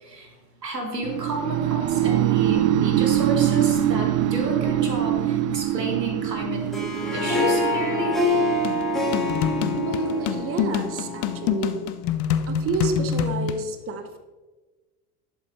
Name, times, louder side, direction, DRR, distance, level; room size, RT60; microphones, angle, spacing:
voice 1, 0.0-0.3 0.6-6.6 7.1-8.2, right 1 dB, 90° right, 1 dB, 1.9 m, -31 dB
sound 1, 1.0-11.0, right 12 dB, 60° right, 0.7 m, -24 dB
Harp, 6.5-11.7, left 2 dB, ahead, 2.6 m, -26 dB
sound 2, 8.6-13.6, left 9 dB, 40° left, 0.6 m, -26 dB
voice 2, 9.7-11.8 12.5-14.2, right 4 dB, 30° right, 8 dB, 0.9 m, -29 dB
11.5 x 7.1 x 3.2 m, 1.3 s
figure-of-eight pair, 75°, 47 cm